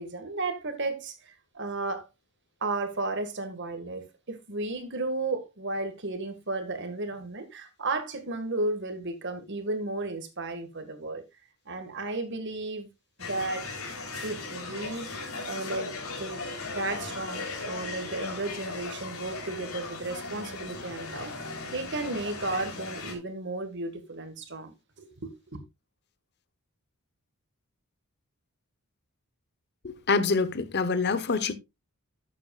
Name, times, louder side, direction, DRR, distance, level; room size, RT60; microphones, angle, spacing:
voice 1, 0.0-2.1 2.6-11.2 11.6-12.9 13.2-13.7 14.2-15.1 15.4-15.9 16.2-16.4 16.7-25.6, right 2 dB, 55° right, 1.8 m, -34 dB
sound 1, 13.2-23.1, left 3 dB, 75° left, 3.6 m, -37 dB
voice 2, 29.8-31.5, left 4 dB, 50° left, 0.9 m, -26 dB
12.5 x 8.4 x 2.4 m
head